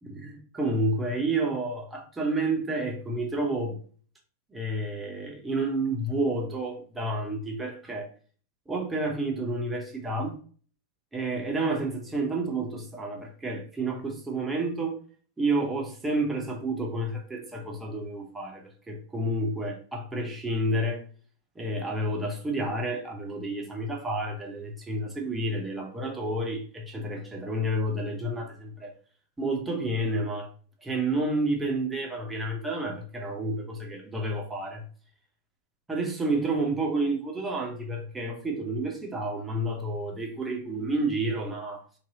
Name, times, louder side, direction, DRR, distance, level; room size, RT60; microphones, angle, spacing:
voice 1, 0.0-3.8 4.5-8.1 8.7-10.4 11.1-15.0 15.4-21.0 21.6-28.9 29.4-30.5 30.8-34.8 35.9-41.8, right 2 dB, 10° right, 0.7 m, -30 dB
2.7 x 2.3 x 2.7 m
figure-of-eight pair, 90°, 0 cm